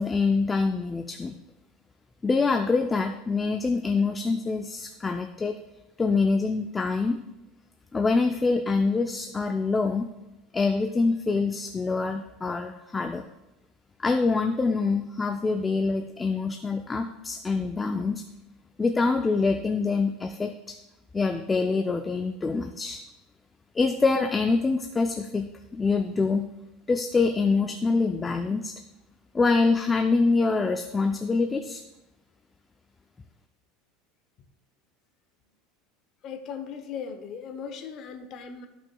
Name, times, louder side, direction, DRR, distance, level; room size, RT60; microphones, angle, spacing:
voice 1, 0.0-1.4 2.2-5.5 6.0-7.2 7.9-10.1 10.5-13.3 14.0-18.2 18.8-20.7 21.1-23.0 23.7-26.5 26.9-28.7 29.3-31.8, left 4 dB, 15° left, 6 dB, 0.4 m, -25 dB
voice 2, 36.2-38.7, left 6 dB, 40° left, 6 dB, 0.8 m, -38 dB
13.0 x 5.9 x 2.3 m, 0.97 s
supercardioid pair, 140°, 0 cm